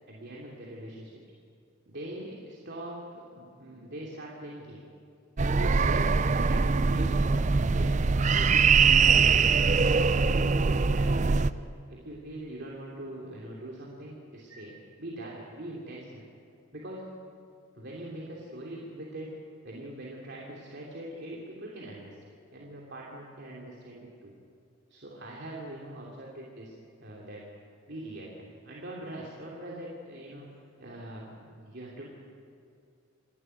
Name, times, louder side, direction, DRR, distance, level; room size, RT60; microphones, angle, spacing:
voice 1, 0.1-1.1 1.9-4.8 5.4-8.0 8.3-9.6 10.2-16.2 16.7-17.1 17.7-19.3 19.6-22.2 22.5-24.3 24.9-27.5 27.9-30.5 30.8-32.2, right 1 dB, 55° right, -3 dB, 3.0 m, -42 dB
sound 1, 5.4-11.5, right 5 dB, 35° right, 0.5 m, -23 dB
28.5 x 12.5 x 9.5 m, 2.5 s
head